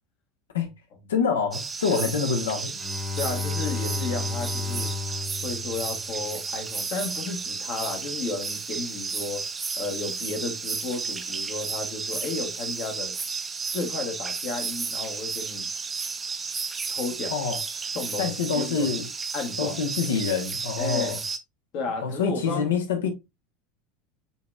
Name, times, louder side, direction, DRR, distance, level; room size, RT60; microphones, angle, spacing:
voice 1, 1.1-2.7 17.3-17.6 18.2-19.1 19.6-21.2 22.0-23.1, left 6 dB, 70° left, 0.9 m, -26 dB
sound 1, 1.5-21.4, right 5 dB, 20° right, 0.6 m, -33 dB
Bowed string instrument, 2.7-6.5, left 4 dB, 30° left, 0.7 m, -33 dB
voice 2, 3.2-4.9 5.4-9.4 9.8-13.1 13.7-15.7 16.9-17.3 17.9-18.9 19.3-19.8 20.8-21.2 21.7-22.7, left 3 dB, 50° left, 1.1 m, -33 dB
6.8 x 2.9 x 2.3 m
figure-of-eight pair, 75°, 0 cm